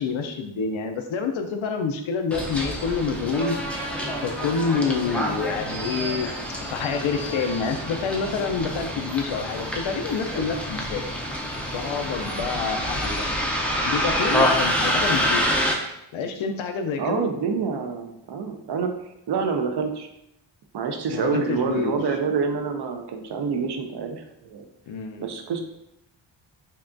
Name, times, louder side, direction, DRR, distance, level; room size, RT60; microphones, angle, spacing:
voice 1, 0.0-3.6 4.2-6.3 6.7-11.0 11.7-13.3 13.8-15.4 16.1-17.2 21.1-22.2 24.9-25.3, left 5 dB, 75° left, 6 dB, 0.6 m, -27 dB
Bus, 2.3-15.7, equal, 5° left, 0.4 m, -27 dB
voice 2, 17.0-18.9 19.3-20.1 20.7-24.6 25.2-25.6, right 5 dB, 55° right, 5 dB, 0.6 m, -27 dB
5.4 x 2.3 x 2.5 m, 0.82 s
wide cardioid pair, 135°, 48 cm